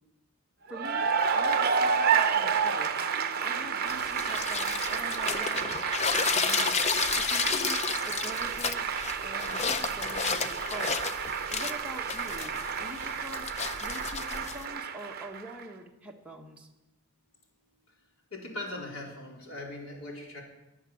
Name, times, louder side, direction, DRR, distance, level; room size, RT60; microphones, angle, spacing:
voice 1, 0.7-3.0 3.4-7.8 8.0-8.9 9.2-11.0 11.5-13.5 13.8-16.7, equal, 5° right, -1 dB, 1.5 m, -45 dB
Cheering / Applause, 0.7-15.6, right 6 dB, 45° right, 0.8 m, -30 dB
sound 1, 3.9-14.6, left 5 dB, 30° left, 0.5 m, -32 dB
voice 2, 18.3-20.4, left 2 dB, 70° left, -2 dB, 4.2 m, -40 dB
22.0 x 7.5 x 7.3 m, 0.98 s
head